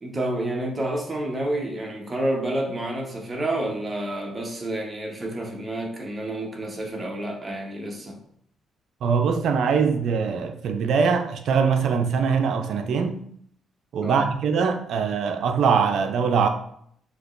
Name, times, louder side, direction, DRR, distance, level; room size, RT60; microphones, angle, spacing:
voice 1, 0.0-8.2 14.0-14.3, right 1 dB, 25° right, 1.0 m, -29 dB
voice 2, 9.0-13.2 13.9-16.5, right 6 dB, 70° right, 0.5 m, -22 dB
6.0 x 2.9 x 2.6 m
cardioid pair, 90°, 0 cm